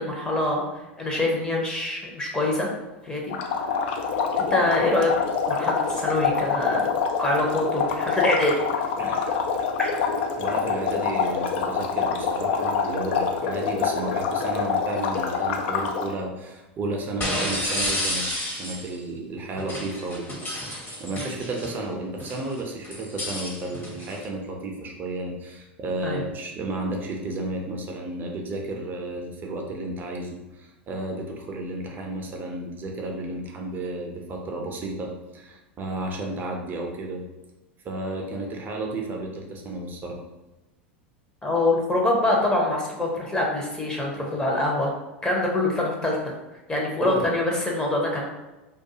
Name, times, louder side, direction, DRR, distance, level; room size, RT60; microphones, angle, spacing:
voice 1, 0.0-2.7 3.0-3.4 4.4-5.1 5.5-6.9 7.2-8.6 9.8-9.9 26.0-26.2 41.4-44.9 45.2-46.2 46.7-48.3, left 2 dB, 15° left, -2 dB, 0.6 m, -25 dB
sound 1, 3.3-16.1, left 5 dB, 65° left, 0.4 m, -26 dB
voice 2, 9.0-9.3 10.3-18.3 18.5-20.5 21.0-37.3 37.8-40.2 47.0-47.2, right 2 dB, 30° right, 1 dB, 0.5 m, -32 dB
sound 2, 15.0-15.3 17.2-18.9 19.6-21.8 22.2-24.2, equal, 35° left, 0.9 m, -31 dB
2.3 x 2.3 x 2.7 m, 1.1 s
hypercardioid pair, 100°, 6 cm